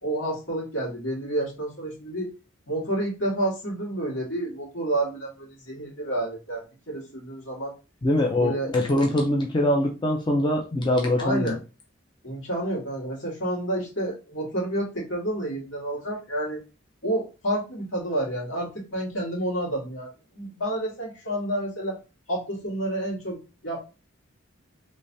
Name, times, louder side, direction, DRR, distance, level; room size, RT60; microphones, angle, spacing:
voice 1, 0.0-2.3 2.7-7.7 8.4-8.7 11.2-11.6 12.2-16.6 17.0-22.0 22.3-23.9, right 1 dB, 75° left, -4 dB, 1.9 m, -29 dB
voice 2, 8.0-11.6, left 1 dB, 25° left, 1 dB, 0.4 m, -23 dB
3.3 x 3.1 x 2.6 m, 0.31 s
head